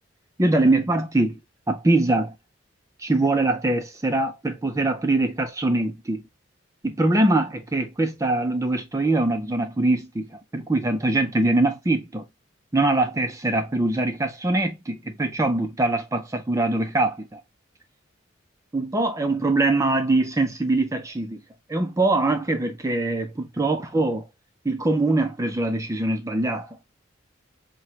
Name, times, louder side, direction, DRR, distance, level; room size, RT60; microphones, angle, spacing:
voice 1, 0.4-1.4 1.7-2.4 3.0-6.2 6.8-12.2 12.7-17.4 18.7-21.4 21.7-24.3 24.6-26.8, right 2 dB, 15° right, 0.4 m, -23 dB
5.8 x 2.2 x 2.8 m
head